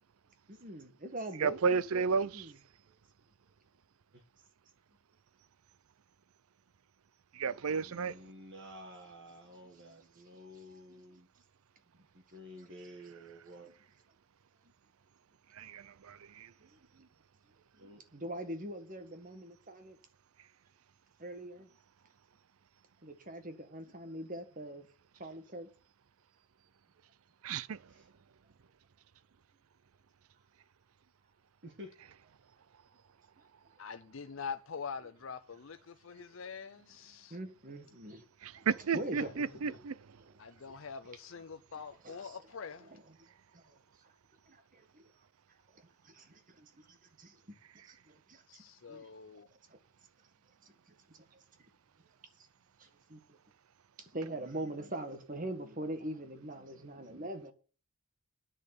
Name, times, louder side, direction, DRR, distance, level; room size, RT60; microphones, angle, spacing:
voice 1, 0.5-2.0 2.3-2.6 9.6-10.2 10.9-11.0 16.6-17.1 17.7-20.0 21.2-21.7 23.0-24.9 25.2-25.7 33.4-33.5 36.1-36.4 37.3-38.2 38.5-38.6 38.9-39.8 40.2-40.4 40.7-40.9 42.0-42.4 42.8-44.1 44.5-45.1 45.7-47.6 47.8-49.1 49.7-49.8 50.6-51.4 52.4-52.5 52.8-53.2 54.0-57.5, right 1 dB, 35° right, 1.8 m, -44 dB
voice 2, 1.4-2.4 7.4-8.1 15.6-16.5 27.4-27.8 38.4-39.9, right 5 dB, 75° right, 0.5 m, -32 dB
voice 3, 7.7-11.3 11.9-13.7 17.8-18.0 27.9-28.1 31.6-31.9, equal, 55° right, 1.7 m, -51 dB
voice 4, 33.8-37.4 39.2-39.3 40.4-42.9 48.5-49.5, left 6 dB, 60° left, 0.6 m, -44 dB
10.0 x 6.6 x 8.4 m
head